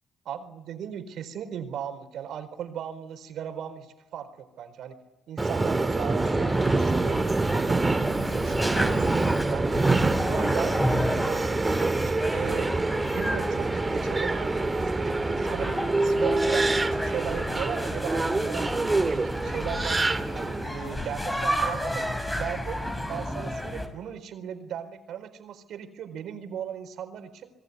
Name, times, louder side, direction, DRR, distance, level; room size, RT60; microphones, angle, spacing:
voice 1, 0.2-5.0 5.3-7.2 7.5-9.1 9.4-10.8 11.1-12.7 13.0-20.0 20.3-22.8 23.1-27.5, right 9 dB, 75° right, 9 dB, 4.3 m, -37 dB
Subway metro underground, 5.4-20.6, right 3 dB, 20° right, 1.7 m, -26 dB
sound 1, 6.2-23.9, left 1 dB, 15° left, 6.4 m, -32 dB
28.0 x 21.5 x 9.6 m, 0.96 s
cardioid pair, 90°, 0 cm